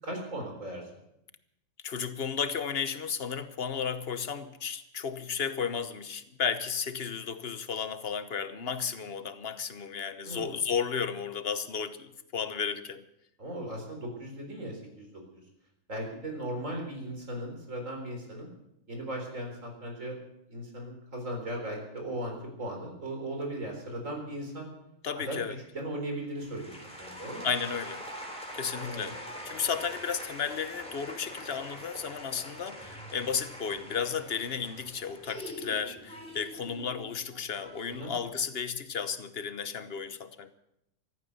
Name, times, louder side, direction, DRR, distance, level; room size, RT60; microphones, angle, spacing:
voice 1, 0.0-0.8 10.2-10.5 13.4-15.4 15.9-18.5 18.9-20.1 20.5-24.7 25.2-27.5 28.7-29.2 37.9-38.1, right 1 dB, 80° right, 2 dB, 4.5 m, -37 dB
voice 2, 1.8-13.0 25.0-25.6 27.4-28.0 28.5-29.1 29.4-40.5, left 6 dB, 50° left, 12 dB, 1.2 m, -33 dB
sound 1, 26.4-38.3, equal, 5° left, 3.7 m, -44 dB
15.0 x 14.0 x 6.8 m, 0.82 s
omnidirectional pair, 1.3 m